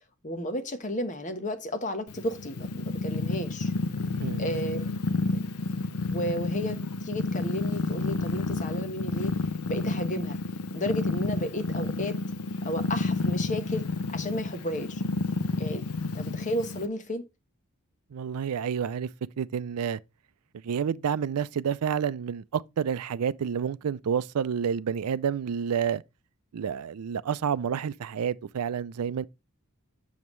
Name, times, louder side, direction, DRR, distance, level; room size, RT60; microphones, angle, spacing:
voice 1, 0.2-3.7 4.4-4.9 5.3-5.4 6.1-9.3 9.7-10.4 10.7-12.2 12.6-15.0 15.6-15.8 16.1-17.3, equal, 35° left, 1.1 m, -33 dB
Purr, 2.1-16.9, left 3 dB, 85° left, 0.6 m, -30 dB
voice 2, 18.1-19.1 19.4-20.0 20.6-26.0 26.5-29.3, right 7 dB, 85° right, 0.4 m, -29 dB
7.2 x 6.9 x 3.1 m
head